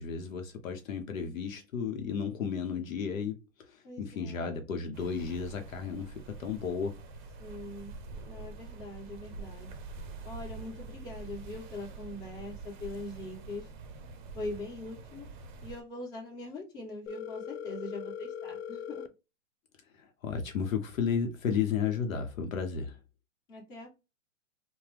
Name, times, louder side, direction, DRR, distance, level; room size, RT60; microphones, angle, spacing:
voice 1, 0.0-3.4 3.7-6.9 19.9-23.0, left 6 dB, 80° left, 0.8 m, -33 dB
voice 2, 3.8-4.6 7.4-7.9 8.2-9.7 10.2-13.7 14.3-15.3 15.6-19.0 23.5-23.9, left 2 dB, 25° left, 1.4 m, -42 dB
sound 1, 4.9-15.8, right 3 dB, 35° right, 0.6 m, -46 dB
Telephone, 17.1-19.1, left 8 dB, 50° left, 0.5 m, -40 dB
2.9 x 2.1 x 3.2 m
hypercardioid pair, 140°, 40 cm